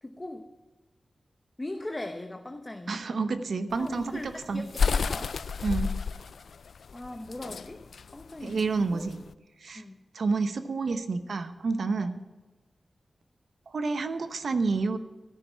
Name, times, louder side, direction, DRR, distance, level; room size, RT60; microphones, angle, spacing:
voice 1, 0.0-0.5 1.6-3.0 3.8-5.3 6.9-7.8 8.1-9.1 9.7-10.0 11.9-12.1, left 1 dB, 25° left, 5 dB, 0.9 m, -39 dB
voice 2, 2.9-4.7 5.6-6.0 8.4-9.2 9.6-9.8 10.1-12.2 13.7-15.0, right 4 dB, 80° right, 10 dB, 0.9 m, -29 dB
sound 1, 3.7-9.3, left 5 dB, 85° left, 0.3 m, -31 dB
13.5 x 6.4 x 7.1 m, 1.2 s
cardioid pair, 65°, 0 cm